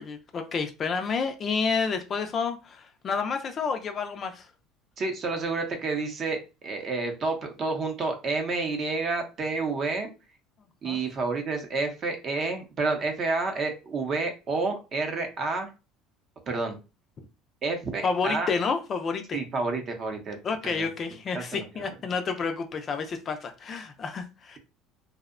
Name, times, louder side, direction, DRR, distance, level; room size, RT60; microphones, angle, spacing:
voice 1, 0.0-4.5 10.8-11.0 18.0-19.4 20.4-24.6, left 5 dB, 35° left, 0.3 m, -30 dB
voice 2, 5.0-10.1 10.8-15.7 16.5-16.8 17.6-18.5 19.3-20.4 20.6-20.9 21.3-21.6, right 3 dB, 35° right, 0.6 m, -29 dB
2.6 x 2.0 x 2.4 m
cardioid pair, 130°, 0 cm